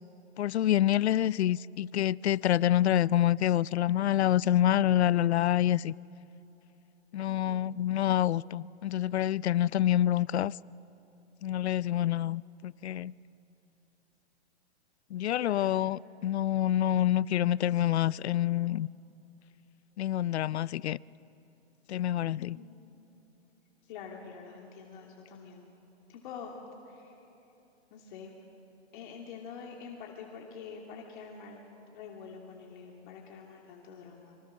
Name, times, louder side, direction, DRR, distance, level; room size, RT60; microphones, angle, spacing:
voice 1, 0.4-5.9 7.1-10.5 11.4-13.1 15.1-18.9 20.0-21.0 21.9-22.6, left 12 dB, 75° left, 0.5 m, -27 dB
voice 2, 7.3-7.7 15.4-15.7 22.4-22.8 23.9-25.7 26.1-26.6 26.8-27.2 27.9-28.4 28.9-31.6 31.9-34.4, left 6 dB, 45° left, 2.9 m, -46 dB
27.0 x 25.0 x 6.4 m
hypercardioid pair, 135°, 33 cm